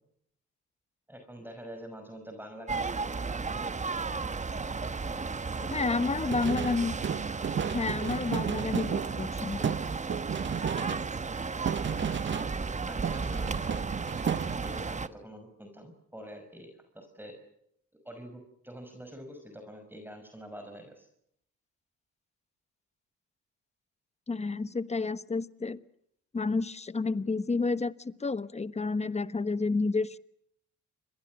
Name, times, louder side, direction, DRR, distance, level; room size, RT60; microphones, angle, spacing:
voice 1, 1.1-3.7 4.8-6.1 12.9-13.9 14.6-17.4 17.9-21.1, equal, 5° right, 5 dB, 5.6 m, -46 dB
sound 1, 2.7-15.1, right 4 dB, 25° right, 1.2 m, -34 dB
voice 2, 5.7-6.9 7.7-9.7 24.3-25.8 26.3-30.2, left 3 dB, 20° left, 14 dB, 1.2 m, -30 dB
sound 2, 6.3-12.8 13.0-14.9, right 7 dB, 40° right, 0.9 m, -34 dB
29.5 x 23.0 x 6.2 m, 0.74 s
cardioid pair, 90°, 30 cm